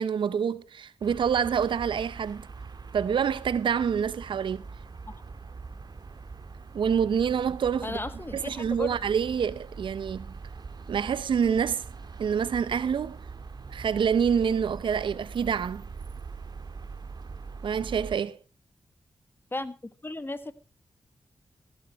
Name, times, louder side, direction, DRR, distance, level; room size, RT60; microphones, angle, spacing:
voice 1, 0.0-2.5 2.9-4.6 6.7-8.0 8.3-10.3 10.9-11.9 12.2-13.2 13.7-15.8 17.6-18.4, right 7 dB, 85° right, 0.7 m, -27 dB
sound 1, 1.0-18.2, right 4 dB, 60° right, 1.7 m, -42 dB
voice 2, 7.8-9.0 19.5-19.8 20.0-20.5, left 2 dB, 25° left, 1.5 m, -35 dB
16.0 x 11.0 x 4.2 m
cardioid pair, 50°, 8 cm